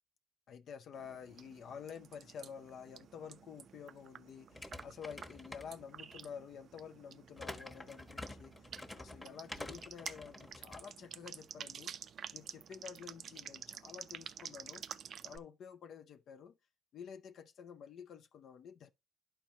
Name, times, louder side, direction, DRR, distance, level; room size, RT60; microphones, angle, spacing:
voice 1, 0.5-8.6 9.0-11.9 12.3-14.8 15.2-16.6 16.9-18.9, left 7 dB, 65° left, 0.5 m, -50 dB
sound 1, 0.9-15.4, right 8 dB, 60° right, 0.4 m, -51 dB
sound 2, 4.5-6.2 7.4-10.8, left 1 dB, 15° left, 1.1 m, -48 dB
11.5 x 4.5 x 2.8 m
cardioid pair, 90°, 0 cm